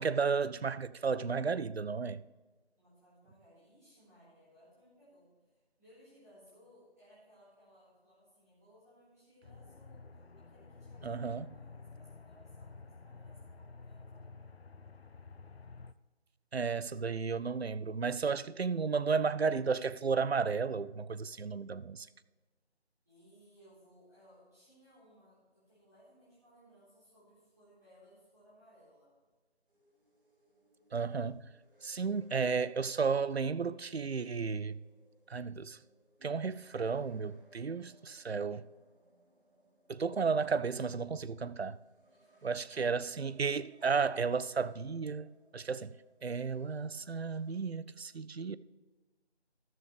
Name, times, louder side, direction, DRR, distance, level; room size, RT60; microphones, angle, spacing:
voice 1, 0.0-2.2 11.0-11.5 16.5-22.1 30.9-31.4 31.8-34.8 35.3-35.8 36.2-38.6 39.9-41.8 42.4-45.9 46.2-48.6, right 5 dB, 70° right, 0.5 m, -33 dB
voice 2, 2.8-5.5 5.8-10.1 10.3-14.4 23.0-29.1 42.1-42.9, equal, 15° right, 3.8 m, -62 dB
Aircraft, 9.4-15.9, left 4 dB, 70° left, 0.6 m, -52 dB
sound 1, 29.7-47.6, right 2 dB, 55° right, 2.7 m, -67 dB
13.5 x 12.5 x 3.4 m
figure-of-eight pair, 170°, 33 cm